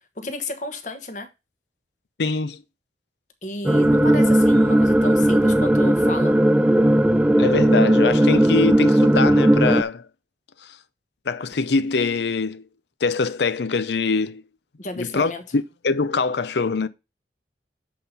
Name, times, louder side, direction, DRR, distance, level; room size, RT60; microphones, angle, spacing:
voice 1, 0.2-1.3 3.4-6.4 14.8-15.4, left 2 dB, 45° left, 1.3 m, -32 dB
voice 2, 2.2-2.6 7.4-10.1 10.6-10.8 11.3-12.6 13.0-14.4 14.9-16.9, left 4 dB, 75° left, 0.6 m, -23 dB
sound 1, 3.7-9.8, right 1 dB, 10° right, 0.3 m, -17 dB
7.5 x 4.4 x 5.4 m
head